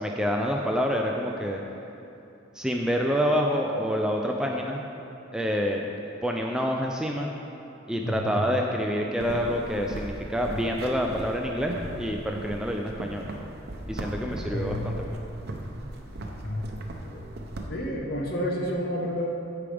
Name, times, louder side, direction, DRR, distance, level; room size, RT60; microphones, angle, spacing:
voice 1, 0.0-1.6 2.6-4.8 5.3-5.9 6.2-7.3 7.9-13.3 13.9-15.2, equal, 5° right, 0 dB, 0.3 m, -27 dB
voice 2, 8.0-8.5 14.5-14.8 16.4-16.6 17.0-17.2 17.7-19.3, equal, 50° left, -1 dB, 1.1 m, -30 dB
sound 1, 9.2-17.7, right 1 dB, 50° right, 0.7 m, -38 dB
14.5 x 4.9 x 3.4 m, 2.8 s
head